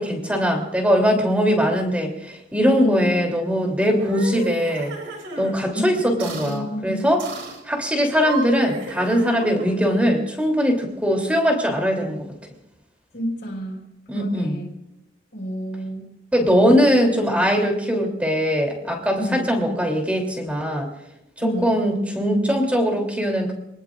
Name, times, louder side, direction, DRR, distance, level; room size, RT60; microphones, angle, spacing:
voice 1, 0.0-4.9 5.4-7.2 7.7-12.2 14.1-14.6 16.3-20.9 21.4-23.5, equal, 5° right, 2 dB, 3.1 m, -21 dB
voice 2, 2.8-3.1 5.7-7.1 13.1-13.9 14.1-14.7 15.3-16.1 19.2-19.5 21.4-21.8, equal, 60° left, -1 dB, 4.6 m, -30 dB
sound 1, 3.9-5.6 6.2-6.6 7.2-7.6 8.1-9.8, right 2 dB, 70° right, 3.2 m, -33 dB
27.0 x 19.5 x 2.5 m, 0.86 s
head